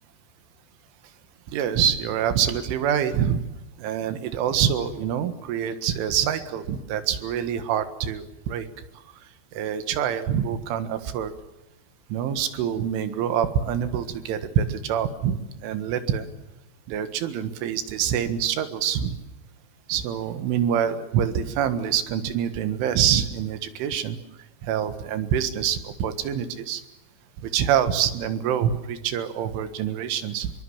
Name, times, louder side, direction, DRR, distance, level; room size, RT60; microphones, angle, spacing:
voice 1, 1.5-3.4 3.8-8.7 9.5-11.3 12.1-16.3 16.9-19.2 19.9-24.2 24.6-26.8 27.4-30.5, right 9 dB, 90° right, 10 dB, 4.1 m, -25 dB
25.5 x 23.0 x 7.3 m, 0.95 s
omnidirectional pair, 5.4 m